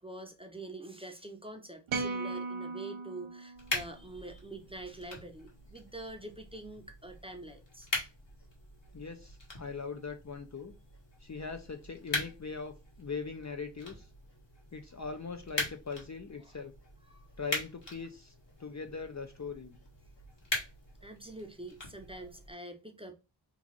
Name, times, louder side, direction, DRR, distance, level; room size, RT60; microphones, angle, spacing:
voice 1, 0.0-7.9 16.4-16.6 17.1-17.3 21.0-23.1, right 2 dB, 10° right, 0.7 m, -45 dB
sound 1, 1.9-4.3, right 4 dB, 80° right, 0.7 m, -38 dB
sound 2, 3.5-22.5, left 2 dB, 65° left, 1.5 m, -42 dB
voice 2, 8.9-10.7 11.2-14.1 14.7-16.7 17.4-18.3 18.6-19.8, left 5 dB, 40° left, 0.5 m, -41 dB
3.1 x 2.4 x 3.8 m
wide cardioid pair, 55°, 46 cm